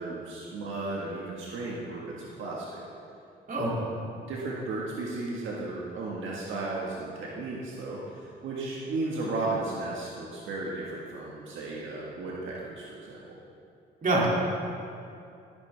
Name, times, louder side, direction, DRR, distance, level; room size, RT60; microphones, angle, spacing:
voice 1, 0.0-2.8 3.6-3.7 4.2-13.4, right 2 dB, 75° right, -4 dB, 1.6 m, -35 dB
voice 2, 3.5-3.8 14.0-14.3, right 2 dB, 45° right, -3 dB, 2.6 m, -25 dB
13.5 x 9.4 x 3.4 m, 2.6 s
cardioid pair, 90°, 20 cm